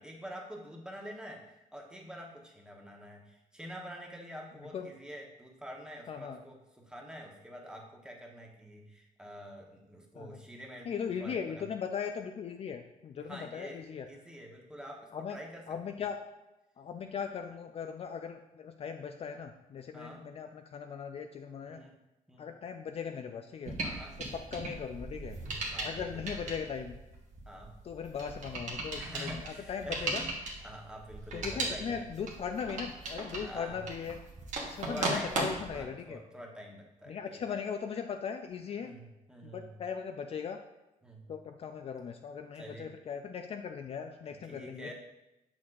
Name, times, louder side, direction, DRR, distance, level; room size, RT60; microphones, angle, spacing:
voice 1, 0.0-10.9 11.2-11.4 13.3-13.8 14.1-15.6 19.9-20.3 21.6-21.9 22.3-22.5 23.8-24.1 25.7-26.5 27.5-27.8 29.0-30.3 30.6-32.1 33.4-33.9 34.9-35.4 35.7-37.4 38.8-39.7 41.0-41.3 42.6-42.9 44.3-44.9, equal, 5° right, 0 dB, 1.1 m, -46 dB
voice 2, 6.1-6.4 10.1-10.4 10.8-14.1 15.1-15.4 15.7-16.2 16.8-21.8 22.4-23.8 24.2-25.4 25.8-27.0 27.8-30.2 31.3-34.2 34.7-36.2 37.1-38.9 39.4-40.6 41.3-44.9, left 7 dB, 45° left, 6 dB, 0.4 m, -38 dB
sound 1, 23.6-35.8, right 2 dB, 60° right, 1.3 m, -38 dB
6.3 x 5.9 x 2.5 m, 0.96 s
cardioid pair, 105°, 14 cm